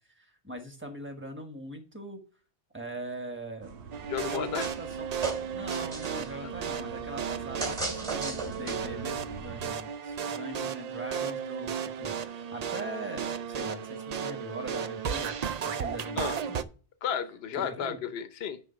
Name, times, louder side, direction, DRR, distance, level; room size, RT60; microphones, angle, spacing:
voice 1, 0.1-2.2 2.7-3.7 4.3-5.1 5.5-15.3 15.6-16.6 17.6-18.0, right 1 dB, 10° right, 1.4 m, -41 dB
sound 1, 3.6-9.7, right 5 dB, 85° right, 1.2 m, -46 dB
sound 2, 3.9-16.6, right 7 dB, 55° right, 0.4 m, -34 dB
voice 2, 4.1-4.7 6.4-6.5 16.2-16.4 17.0-18.6, left 8 dB, 70° left, 1.0 m, -33 dB
sound 3, 4.6-5.0 5.2-6.3 7.6-9.0, right 3 dB, 35° right, 2.2 m, -35 dB
10.5 x 3.5 x 5.6 m
omnidirectional pair, 1.1 m